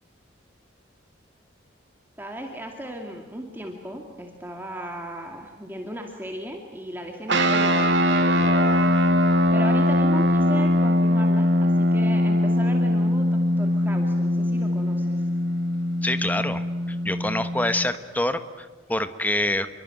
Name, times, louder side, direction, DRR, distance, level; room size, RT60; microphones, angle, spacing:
voice 1, 2.2-8.9 9.5-15.3, right 1 dB, 10° right, 2 dB, 2.3 m, -36 dB
sound 1, 7.3-18.0, left 1 dB, 60° right, 2.5 m, -21 dB
voice 2, 16.0-19.7, left 1 dB, 10° left, 10 dB, 1.2 m, -26 dB
28.0 x 23.0 x 9.2 m, 1.4 s
head